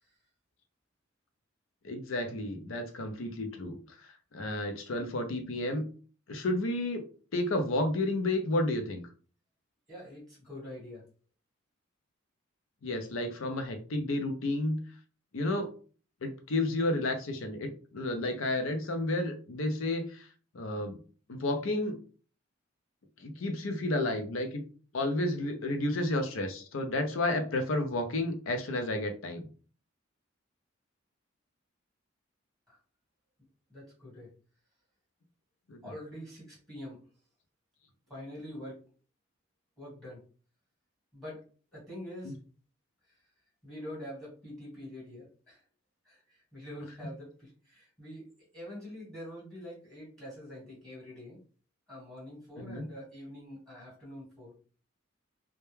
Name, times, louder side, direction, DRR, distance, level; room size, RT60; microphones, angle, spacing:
voice 1, 1.8-3.8 4.3-5.8 6.3-7.0 7.3-9.0 12.8-14.8 15.3-15.7 16.2-20.3 20.5-21.0 21.3-22.0 23.2-24.6 24.9-29.5 35.7-35.8 52.6-52.8, left 1 dB, 75° left, 5 dB, 0.5 m, -31 dB
voice 2, 9.9-11.0 32.7-32.8 33.7-34.3 35.8-37.0 38.1-38.8 39.8-40.2 41.1-41.4 41.7-42.3 43.1-43.3 43.6-45.6 46.0-51.4 51.9-54.5, left 1 dB, 5° left, -6 dB, 1.2 m, -45 dB
2.2 x 2.1 x 3.1 m, 0.40 s
head